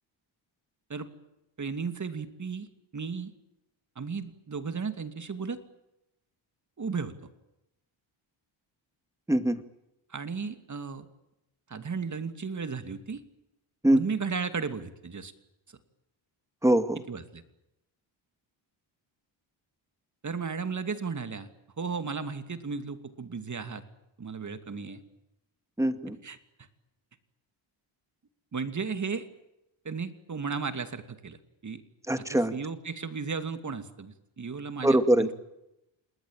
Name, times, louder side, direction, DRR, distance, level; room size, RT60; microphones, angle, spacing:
voice 1, 1.6-2.7 2.9-3.3 4.0-5.6 6.8-7.3 10.1-11.1 11.7-13.2 13.8-15.3 15.7-15.8 17.1-17.4 20.2-21.5 21.8-23.8 24.2-25.0 26.2-26.4 28.5-29.3 29.8-31.8 32.2-35.3, right 5 dB, 35° right, 10 dB, 2.7 m, -35 dB
voice 2, 9.3-9.6 13.8-14.0 16.6-17.0 25.8-26.2 32.1-32.5 34.8-35.3, right 1 dB, 5° right, 10 dB, 2.1 m, -22 dB
28.0 x 20.0 x 9.0 m, 0.89 s
cardioid pair, 95°, 48 cm